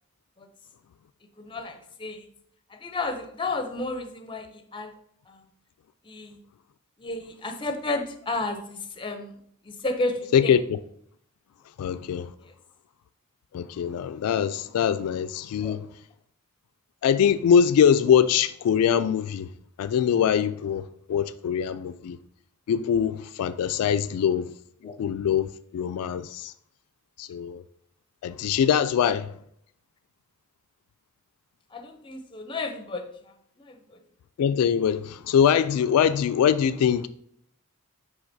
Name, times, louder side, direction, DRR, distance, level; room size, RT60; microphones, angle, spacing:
voice 1, 1.4-2.3 2.7-4.9 5.3-5.4 6.0-6.4 7.0-9.3 9.6-10.6 12.4-12.5 15.6-15.8 24.8-24.9 31.7-34.0, left 2 dB, 25° left, 0.6 m, -32 dB
voice 2, 11.8-12.3 13.5-15.9 17.0-19.5 19.8-20.8 21.1-22.2 22.7-24.5 25.0-26.5 27.2-27.6 28.2-29.3 34.4-37.1, left 8 dB, 85° left, 0.3 m, -23 dB
9.5 x 3.7 x 2.7 m
head